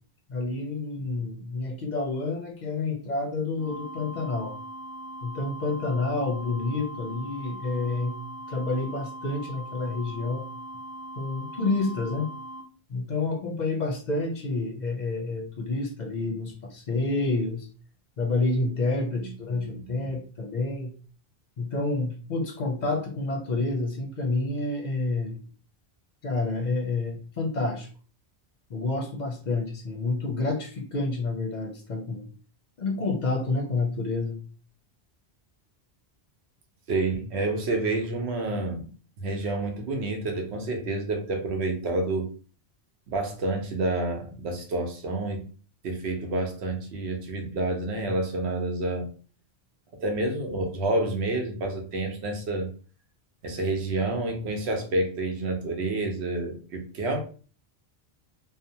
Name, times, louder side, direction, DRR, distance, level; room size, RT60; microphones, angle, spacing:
voice 1, 0.3-4.6 5.2-8.1 8.5-10.5 11.2-12.3 12.9-17.7 18.2-20.9 21.6-25.4 26.2-27.9 28.7-32.2 32.8-34.4, left 3 dB, 55° left, 0.6 m, -29 dB
sound 1, 3.6-12.6, right 1 dB, 5° right, 0.5 m, -40 dB
voice 2, 19.6-20.1 36.9-38.9 39.2-42.3 43.1-45.4 45.8-49.1 50.0-52.7 53.4-57.2, right 2 dB, 90° right, 1.0 m, -29 dB
2.7 x 2.0 x 2.7 m
omnidirectional pair, 1.1 m